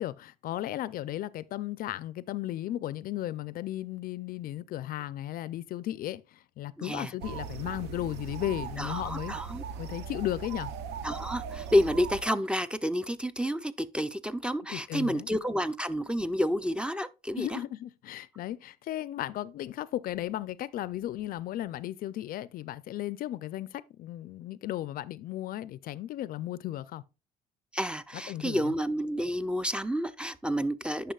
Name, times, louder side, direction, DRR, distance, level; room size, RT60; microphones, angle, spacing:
voice 1, 0.0-9.3 9.8-10.7 14.7-15.3 17.4-27.0 28.3-28.7, left 13 dB, 60° left, 0.4 m, -35 dB
voice 2, 6.8-7.1 8.8-9.6 11.0-17.6 27.7-31.1, equal, 5° right, 0.4 m, -30 dB
sound 1, 7.2-12.2, right 7 dB, 85° right, 0.7 m, -39 dB
10.0 x 5.7 x 2.3 m
cardioid pair, 110°, 17 cm